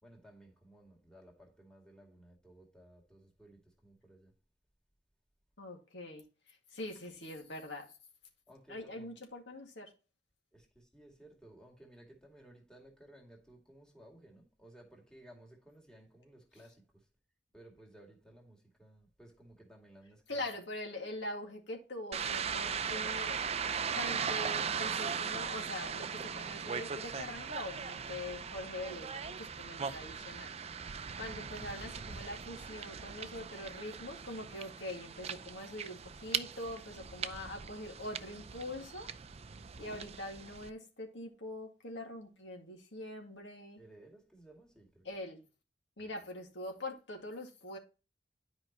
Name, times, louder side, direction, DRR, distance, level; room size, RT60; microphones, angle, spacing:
voice 1, 0.0-4.3 8.5-9.1 10.5-10.7 10.9-16.7 17.5-20.5 29.8-30.3 39.3-39.9 43.8-45.0 46.0-46.1, right 1 dB, 5° left, 2.4 m, -58 dB
voice 2, 5.6-6.2 6.7-7.9 8.7-9.9 20.3-23.4 23.9-30.5 31.2-39.1 39.8-43.8 45.0-45.4 46.0-47.8, left 1 dB, 80° left, 2.2 m, -43 dB
sound 1, 22.1-40.7, right 6 dB, 35° right, 0.5 m, -39 dB
11.0 x 5.2 x 3.0 m
head